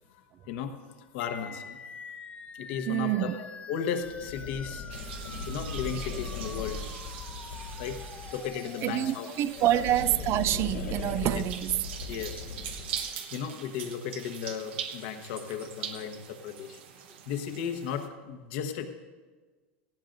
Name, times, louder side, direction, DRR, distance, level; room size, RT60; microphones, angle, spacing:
voice 1, 0.4-1.8 2.6-4.8 5.5-6.8 7.8-8.0 8.3-9.3 9.6-9.8 11.3-11.4 12.1-12.5 13.3-16.8 17.3-18.9, left 7 dB, 70° left, 1.3 m, -35 dB
sound 1, 1.2-11.2, left 5 dB, 20° left, 0.7 m, -46 dB
voice 2, 2.9-3.4 8.8-11.8, right 13 dB, 45° right, 0.4 m, -27 dB
sound 2, 4.0-8.5 9.4-13.1, left 3 dB, 90° left, 3.5 m, -38 dB
sound 3, 4.9-18.1, right 8 dB, 75° right, 1.2 m, -43 dB
17.5 x 15.5 x 2.7 m
supercardioid pair, 115°, 6 cm